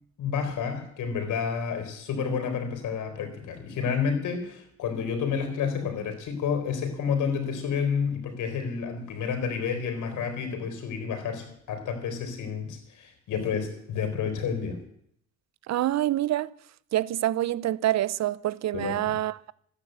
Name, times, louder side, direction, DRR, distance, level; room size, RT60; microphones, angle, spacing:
voice 1, 0.2-14.8 18.7-19.0, left 6 dB, 80° left, 4.1 m, -30 dB
voice 2, 15.7-16.5 16.9-19.5, right 14 dB, 60° right, 0.6 m, -26 dB
14.0 x 9.9 x 8.0 m
cardioid pair, 90°, 30 cm